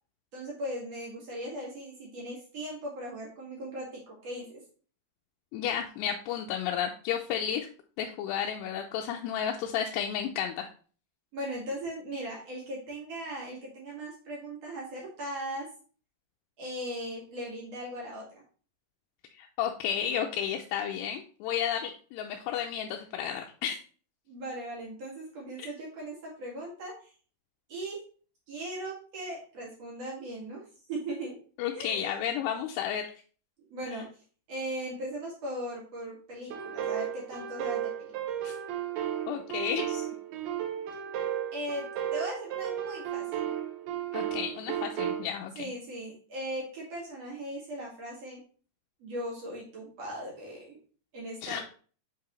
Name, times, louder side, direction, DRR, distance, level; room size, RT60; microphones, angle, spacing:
voice 1, 0.3-4.6 11.3-15.7 16.6-18.4 24.3-27.1 27.7-28.0 28.5-30.6 30.9-31.4 31.7-32.3 33.7-34.1 34.5-38.1 41.5-43.5 45.6-48.4 49.0-50.8 51.1-51.6, right 1 dB, 45° right, -4 dB, 2.5 m, -38 dB
voice 2, 5.5-7.7 8.0-10.7 19.3-23.8 25.6-25.7 31.6-33.0 38.4-38.5 39.3-40.1 44.1-45.7 51.4-51.6, left 9 dB, 85° left, 2 dB, 2.7 m, -32 dB
sound 1, 36.5-45.2, right 10 dB, 75° right, 2.6 m, -34 dB
7.5 x 4.7 x 3.1 m, 0.41 s
omnidirectional pair, 4.8 m